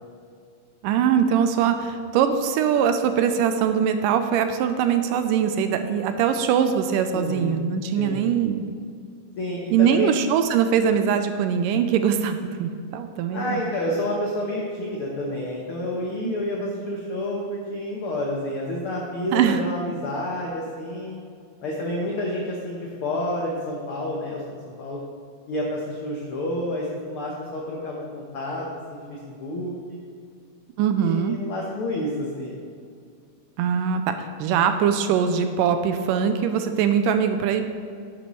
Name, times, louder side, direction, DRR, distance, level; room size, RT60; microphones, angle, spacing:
voice 1, 0.8-8.7 9.7-13.6 16.2-16.3 19.3-19.6 30.8-31.4 33.6-37.6, right 8 dB, 80° right, 8 dB, 2.1 m, -22 dB
voice 2, 7.1-7.6 8.0-8.2 9.4-10.1 13.3-21.2 21.6-25.0 25.5-30.0 30.9-32.5, left 1 dB, 65° left, -3 dB, 1.3 m, -29 dB
11.0 x 10.0 x 3.1 m, 2.3 s
omnidirectional pair, 4.0 m